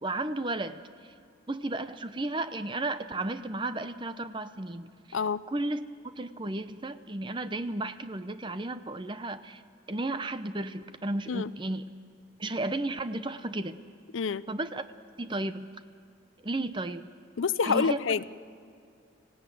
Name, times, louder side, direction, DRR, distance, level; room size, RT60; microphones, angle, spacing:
voice 1, 0.0-1.1 1.5-5.2 5.5-9.6 9.9-11.9 12.4-13.8 14.5-14.8 15.2-15.7 16.4-17.1 17.6-18.0, right 2 dB, 25° right, 11 dB, 0.7 m, -33 dB
voice 2, 5.1-5.5 11.3-11.5 14.1-14.4 17.4-18.2, left 5 dB, 75° left, 17 dB, 0.5 m, -27 dB
25.0 x 17.0 x 9.3 m, 2.5 s
head